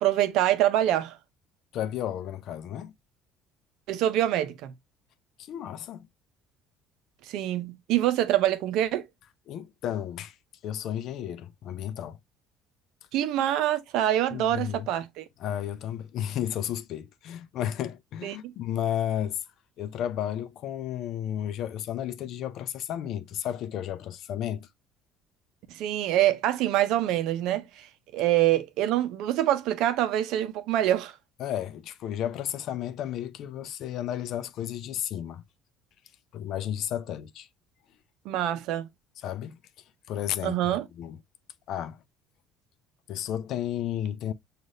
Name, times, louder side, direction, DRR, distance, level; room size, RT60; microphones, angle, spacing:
voice 1, 0.0-1.2 3.9-4.7 7.3-9.0 13.1-15.2 18.2-18.5 25.7-27.9 28.1-31.1 38.2-38.9 40.4-40.9, right 12 dB, 70° right, 0.6 m, -25 dB
voice 2, 1.7-2.9 5.4-6.1 9.5-10.4 10.6-12.2 14.3-14.9 15.4-19.4 19.8-24.7 31.4-35.4 36.3-37.5 39.2-39.6 40.1-40.6 40.9-41.2 41.7-42.0 43.1-44.3, left 10 dB, 60° left, 0.4 m, -33 dB
6.3 x 2.4 x 2.4 m
hypercardioid pair, 70°, 0 cm